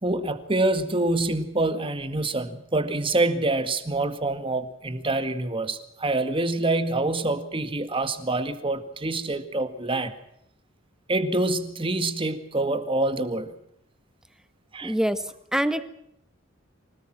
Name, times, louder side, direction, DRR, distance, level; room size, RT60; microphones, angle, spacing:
voice 1, 0.0-10.1 11.1-13.5 14.7-14.9, right 2 dB, 25° right, 10 dB, 1.9 m, -26 dB
voice 2, 14.8-15.2 15.5-15.8, equal, 5° right, 11 dB, 1.4 m, -24 dB
25.5 x 18.5 x 6.2 m, 0.76 s
head